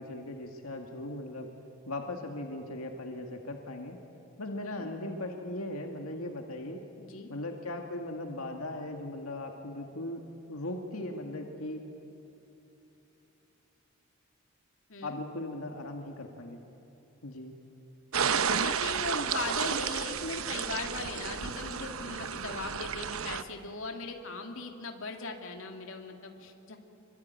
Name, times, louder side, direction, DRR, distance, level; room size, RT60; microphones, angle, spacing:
voice 1, 0.0-1.5 1.9-4.0 4.4-6.8 7.3-10.2 10.5-11.9 15.0-16.6 17.2-17.5, left 1 dB, 85° left, 3 dB, 2.1 m, -38 dB
voice 2, 7.0-7.3 14.9-15.2 18.4-26.8, left 3 dB, 65° left, 3 dB, 2.5 m, -39 dB
sound 1, 18.1-23.4, right 7 dB, 75° right, 0.9 m, -32 dB
25.5 x 24.5 x 9.5 m, 2.9 s
head